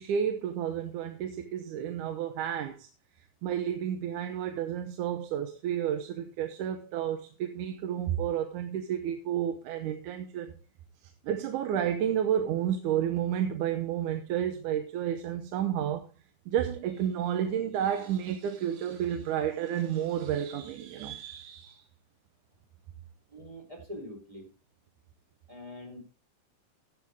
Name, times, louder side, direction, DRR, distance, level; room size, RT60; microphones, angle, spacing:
voice 1, 0.0-2.9 3.4-10.5 11.2-16.1 16.5-21.8, right 9 dB, 80° right, 2.4 m, -31 dB
voice 2, 23.3-24.5 25.5-26.0, left 1 dB, 10° right, 4.0 m, -44 dB
13.5 x 9.6 x 3.5 m
omnidirectional pair, 3.5 m